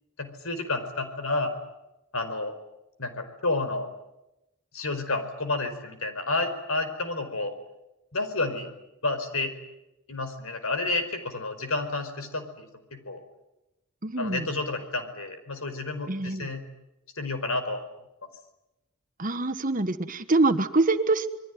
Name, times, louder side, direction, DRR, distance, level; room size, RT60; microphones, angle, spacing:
voice 1, 0.2-1.5 2.1-2.5 3.0-3.9 4.7-7.5 8.1-8.7 9.0-9.5 10.1-12.6 12.9-13.2 14.2-16.6 17.2-17.8, left 2 dB, 75° left, 9 dB, 4.9 m, -30 dB
voice 2, 14.0-14.5 16.1-16.5 19.2-21.3, right 2 dB, 40° right, 11 dB, 1.4 m, -25 dB
27.0 x 22.5 x 9.6 m, 0.94 s
head